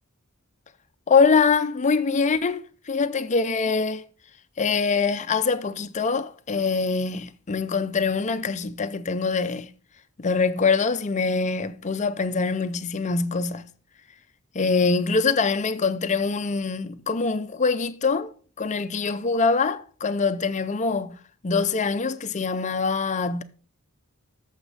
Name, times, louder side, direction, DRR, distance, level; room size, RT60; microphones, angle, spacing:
voice 1, 1.1-4.0 4.6-9.7 10.2-13.7 14.5-18.3 18.6-21.2 21.4-23.4, left 4 dB, 35° left, 0.5 m, -24 dB
8.9 x 7.1 x 3.9 m
head